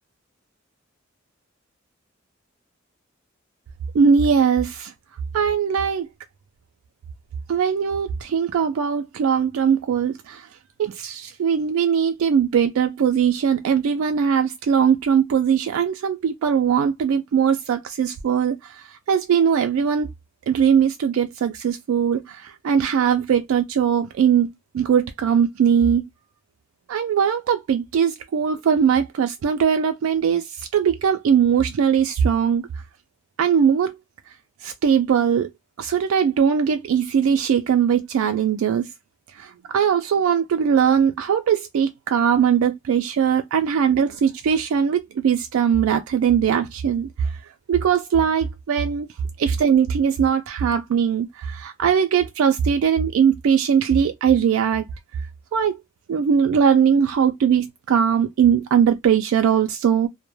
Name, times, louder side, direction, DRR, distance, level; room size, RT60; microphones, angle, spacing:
voice 1, 3.9-4.9 5.3-6.1 7.5-10.4 10.8-18.6 19.1-20.1 20.5-24.5 24.7-26.0 26.9-30.4 30.7-32.6 33.4-33.9 34.6-35.5 35.8-38.8 39.4-47.1 47.7-49.1 49.4-54.8 55.5-55.8 56.1-60.1, right 7 dB, 85° right, 0.3 m, -20 dB
2.1 x 2.0 x 2.9 m
head